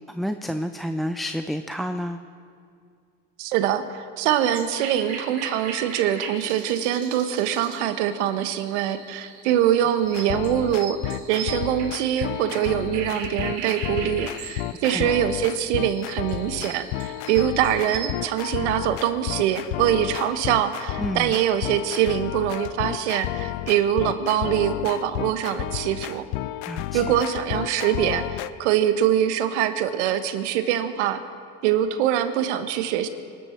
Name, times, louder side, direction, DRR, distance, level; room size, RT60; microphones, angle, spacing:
voice 1, 0.1-2.2 14.7-15.1 21.0-21.3 26.7-27.0, equal, ahead, 8 dB, 0.4 m, -30 dB
voice 2, 3.4-26.3 26.9-31.2 31.6-33.1, right 10 dB, 90° right, 10 dB, 1.3 m, -24 dB
sound 1, 4.5-18.1, right 6 dB, 55° right, 3.7 m, -39 dB
sound 2, 10.0-28.5, left 16 dB, 70° left, 0.6 m, -32 dB
26.0 x 12.5 x 4.5 m, 2.3 s
supercardioid pair, 120°, 34 cm